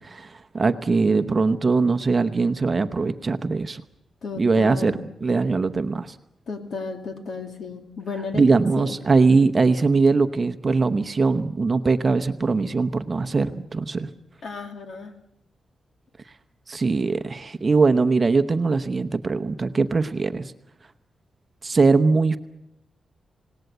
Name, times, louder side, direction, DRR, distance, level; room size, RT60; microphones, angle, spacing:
voice 1, 0.0-3.8 4.4-6.1 8.3-14.1 16.7-20.5 21.6-22.4, right 4 dB, 30° right, 10 dB, 0.9 m, -21 dB
voice 2, 4.2-5.0 6.5-8.5 8.8-9.0 14.4-15.1, left 4 dB, 60° left, 5 dB, 2.6 m, -33 dB
26.5 x 18.5 x 8.1 m, 0.86 s
wide cardioid pair, 145°, 0 cm